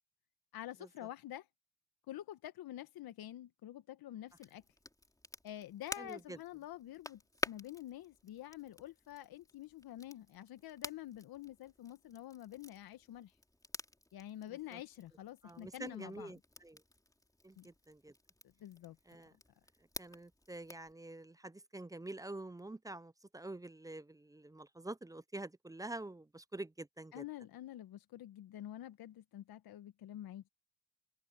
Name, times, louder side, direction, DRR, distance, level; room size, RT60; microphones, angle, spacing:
voice 1, 0.5-1.5 2.1-4.6 5.4-7.2 7.4-13.4 14.1-16.3 17.6-17.7 18.6-19.0 27.1-30.5, left 13 dB, 65° left, 1.5 m, -48 dB
Crackle, 4.3-20.9, left 1 dB, 10° left, 3.6 m, -50 dB
voice 2, 6.0-6.4 14.7-14.8 15.4-16.8 17.4-18.1 19.1-19.3 20.0-27.2, right 2 dB, 10° right, 0.5 m, -47 dB
supercardioid pair, 60°, 39 cm